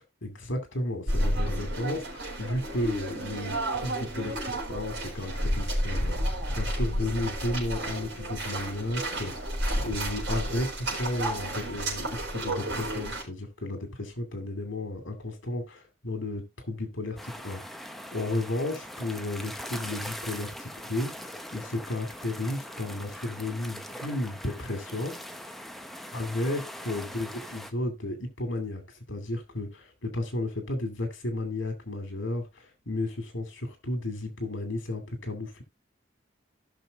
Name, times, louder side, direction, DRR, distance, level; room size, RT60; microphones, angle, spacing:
voice 1, 0.2-17.6 18.1-25.1 26.1-28.8 29.1-35.6, left 1 dB, 75° left, 2.4 m, -33 dB
sound 1, 1.1-13.2, right 1 dB, 65° right, 4.3 m, -31 dB
sound 2, 17.2-27.7, equal, ahead, 0.7 m, -41 dB
16.0 x 6.1 x 2.4 m
head